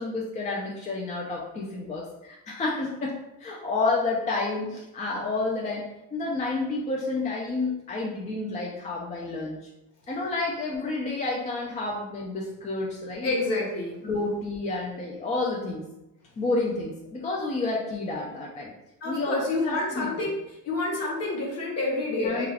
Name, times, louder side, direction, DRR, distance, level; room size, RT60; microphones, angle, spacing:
voice 1, 0.0-9.7 10.1-13.3 14.0-15.8 16.4-18.7 19.0-20.3 22.2-22.5, left 3 dB, 20° left, -3 dB, 0.4 m, -30 dB
voice 2, 13.2-14.0 19.0-20.3 20.6-22.5, left 2 dB, 45° left, -2 dB, 0.9 m, -28 dB
2.3 x 2.3 x 3.3 m, 0.91 s
cardioid pair, 120°, 36 cm